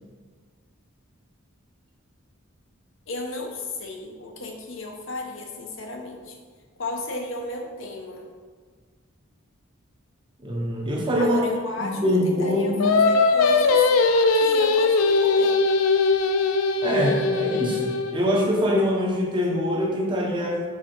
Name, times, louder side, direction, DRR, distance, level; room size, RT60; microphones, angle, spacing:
voice 1, 3.1-6.4 6.8-8.2 11.2-13.9 14.3-15.6, left 2 dB, 65° left, 2 dB, 0.9 m, -34 dB
voice 2, 10.4-11.4 11.8-13.0 16.8-20.6, equal, 25° right, -1 dB, 1.0 m, -24 dB
Singing, 12.8-18.2, left 4 dB, 90° left, 0.5 m, -20 dB
5.1 x 4.8 x 4.4 m, 1.5 s
head